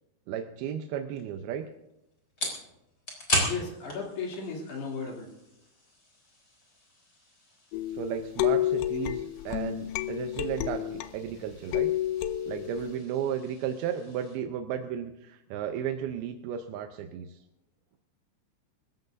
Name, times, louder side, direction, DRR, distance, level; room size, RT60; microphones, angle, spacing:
voice 1, 0.3-1.7 7.9-11.9 12.5-17.4, right 9 dB, 75° right, 6 dB, 2.4 m, -34 dB
sound 1, 1.1-14.4, left 1 dB, 20° left, 4.0 m, -39 dB
voice 2, 3.4-5.3, left 5 dB, 65° left, -1 dB, 4.9 m, -35 dB
sound 2, 7.7-11.3 11.7-13.0, left 13 dB, 80° left, 2.8 m, -30 dB
25.5 x 14.5 x 2.7 m, 0.88 s
omnidirectional pair, 5.1 m